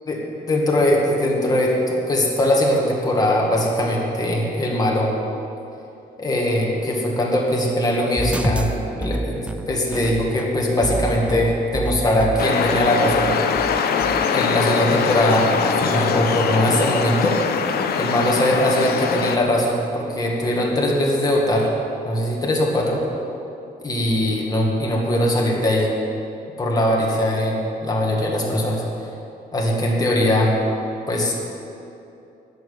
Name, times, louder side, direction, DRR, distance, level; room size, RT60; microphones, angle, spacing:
voice 1, 0.5-5.1 6.2-8.7 8.9-9.4 9.7-13.3 14.3-17.4 18.0-21.7 22.0-23.0 23.8-25.9 26.6-28.8 29.5-30.6 31.1-31.3, left 1 dB, 25° left, -2 dB, 2.0 m, -20 dB
sound 1, 8.2-14.2, right 2 dB, 5° right, 0.4 m, -29 dB
sound 2, 12.4-19.4, left 6 dB, 80° left, 0.8 m, -22 dB
10.5 x 7.4 x 8.9 m, 2.8 s
cardioid pair, 150°, 16 cm